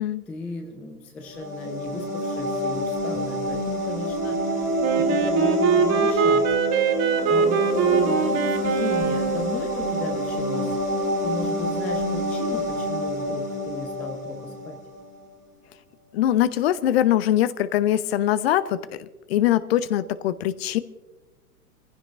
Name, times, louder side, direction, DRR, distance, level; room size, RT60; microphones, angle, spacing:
voice 1, 0.3-4.7 5.0-6.5 7.3-10.8 11.2-14.8, left 3 dB, 5° left, 5 dB, 0.4 m, -35 dB
sound 1, 1.3-14.8, equal, 90° left, 4.6 m, -27 dB
Wind instrument woodwind instrument, 4.8-9.5, right 6 dB, 35° right, 1.6 m, -23 dB
voice 2, 16.1-18.8 19.3-20.8, left 12 dB, 45° left, 14 dB, 0.9 m, -22 dB
27.0 x 15.5 x 2.5 m, 1.2 s
figure-of-eight pair, 100°, 44 cm